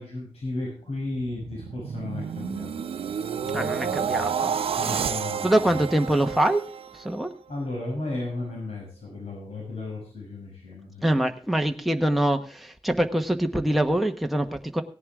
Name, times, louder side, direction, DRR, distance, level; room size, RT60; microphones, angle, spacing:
voice 1, 0.0-2.8 3.4-4.3 4.7-5.8 7.5-11.1, left 2 dB, 85° left, -2 dB, 6.5 m, -34 dB
sound 1, 1.1-7.3 7.7-8.0, right 7 dB, 75° right, 0.7 m, -30 dB
voice 2, 3.5-4.6 5.4-6.6 7.0-7.3 11.0-14.8, right 1 dB, ahead, 4 dB, 1.0 m, -24 dB
17.0 x 10.5 x 3.6 m, 0.40 s
wide cardioid pair, 145°, 10 cm